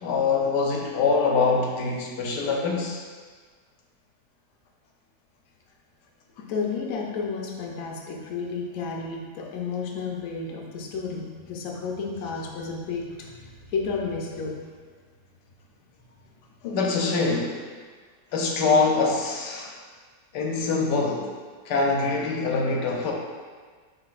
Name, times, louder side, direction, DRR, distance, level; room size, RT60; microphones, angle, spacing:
voice 1, 0.0-3.0 16.6-17.6 18.3-19.7 20.3-21.3 21.7-23.1, left 4 dB, 80° left, 0 dB, 1.2 m, -24 dB
voice 2, 6.4-14.6, left 4 dB, 65° left, 0 dB, 0.9 m, -32 dB
5.7 x 3.4 x 2.4 m, 1.5 s
omnidirectional pair, 1.8 m